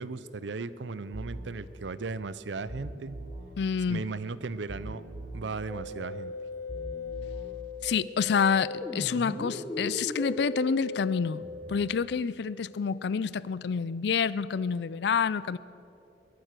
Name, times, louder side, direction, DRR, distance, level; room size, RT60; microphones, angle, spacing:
voice 1, 0.0-3.2 3.9-5.0 5.3-6.3, right 4 dB, 85° right, 15 dB, 0.6 m, -36 dB
sound 1, 1.1-1.5 2.7-3.5 4.7-5.5 6.7-7.5, right 1 dB, 35° right, 3.7 m, -41 dB
voice 2, 3.6-4.1 7.8-11.4 11.7-15.6, left 6 dB, 65° left, 19 dB, 0.4 m, -28 dB
Musical instrument, 5.7-11.7, left 2 dB, 15° left, 1.2 m, -37 dB
22.5 x 9.1 x 6.7 m, 2.9 s
head